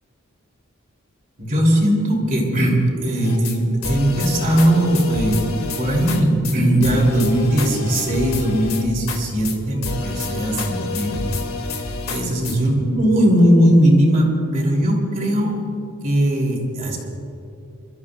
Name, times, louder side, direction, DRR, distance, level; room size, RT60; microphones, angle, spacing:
voice 1, 1.4-5.4 5.8-11.2 12.1-15.6 16.0-17.0, right 1 dB, 40° right, -1 dB, 3.1 m, -18 dB
sound 1, 3.2-3.6 3.8-6.2 6.4-6.5 6.8-9.2 9.4-9.6 9.8-12.6, left 3 dB, 75° left, 2.1 m, -28 dB
29.5 x 13.5 x 2.4 m, 2.8 s
head